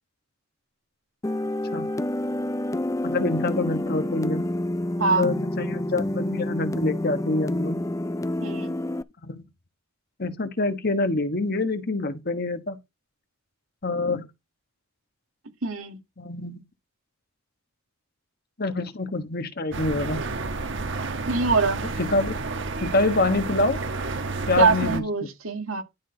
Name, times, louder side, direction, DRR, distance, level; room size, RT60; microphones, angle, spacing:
sound 1, 1.2-9.0, left 1 dB, 15° left, 0.4 m, -28 dB
voice 1, 3.0-4.5 5.1-7.8 9.2-9.4 10.2-12.8 13.8-14.3 16.2-16.6 18.6-20.3 21.8-22.4 22.8-23.8 24.5-25.0, left 2 dB, 50° left, 1.4 m, -26 dB
voice 2, 8.4-8.7 15.6-16.0 21.3-21.8 24.6-25.8, right 4 dB, 90° right, 2.2 m, -23 dB
sound 2, 19.7-25.0, right 3 dB, 65° right, 1.3 m, -30 dB
12.0 x 6.1 x 3.9 m
head